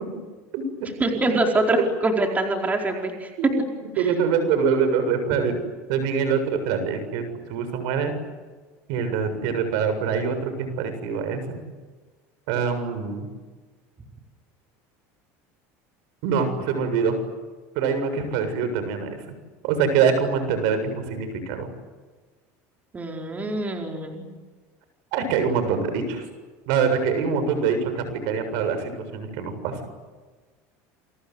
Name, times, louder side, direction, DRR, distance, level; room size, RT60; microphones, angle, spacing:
voice 1, 1.0-3.3 4.0-4.1 22.9-24.3, right 2 dB, 20° right, 2 dB, 4.7 m, -24 dB
voice 2, 4.0-5.5 5.9-7.2 7.5-8.1 8.9-11.6 12.5-13.3 16.2-17.2 17.7-19.2 19.6-21.7 25.1-26.2 26.7-29.8, right 6 dB, 70° right, 9 dB, 7.3 m, -24 dB
29.5 x 25.0 x 8.2 m, 1.4 s
supercardioid pair, 120°, 8 cm